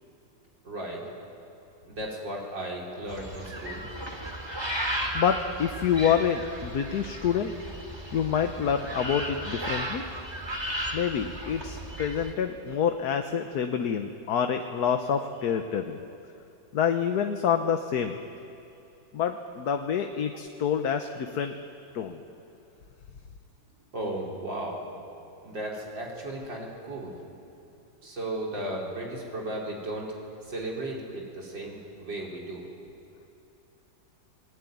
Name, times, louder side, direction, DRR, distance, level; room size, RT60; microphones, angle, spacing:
voice 1, 0.6-1.0 1.8-3.8 23.9-24.8 25.4-27.1 28.0-30.1 30.5-32.7, right 1 dB, 80° right, -2 dB, 5.1 m, -35 dB
sound 1, 3.1-12.3, right 1 dB, 15° right, 2.5 m, -35 dB
voice 2, 5.1-7.5 8.1-10.0 10.9-16.0 16.7-18.1 19.1-21.6 21.9-22.2, left 7 dB, 60° left, 6 dB, 1.4 m, -27 dB
29.5 x 20.0 x 9.4 m, 2.8 s
omnidirectional pair, 2.0 m